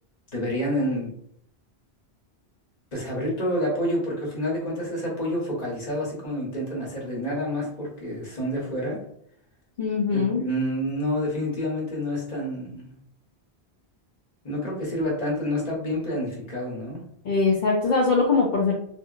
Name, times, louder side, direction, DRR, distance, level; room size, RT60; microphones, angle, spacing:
voice 1, 0.3-1.1 2.9-9.0 10.1-12.9 14.4-17.0, equal, 40° left, -4 dB, 1.1 m, -28 dB
voice 2, 9.8-10.4 17.2-18.7, left 4 dB, 55° left, -3 dB, 0.6 m, -22 dB
2.8 x 2.5 x 2.4 m, 0.69 s
omnidirectional pair, 1.1 m